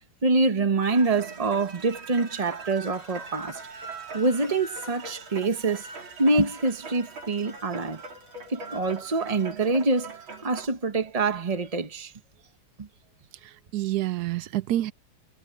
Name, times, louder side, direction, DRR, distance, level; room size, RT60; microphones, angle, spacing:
voice 1, 0.2-3.6 4.1-5.9 6.2-8.0 8.5-10.2 10.4-12.1 12.8-12.9, right 3 dB, 40° right, 0.5 m, -25 dB
sound 1, 0.8-10.7, right 3 dB, 70° right, 3.9 m, -41 dB
voice 2, 13.4-14.9, right 14 dB, 90° right, 0.8 m, -28 dB
omnidirectional pair, 2.3 m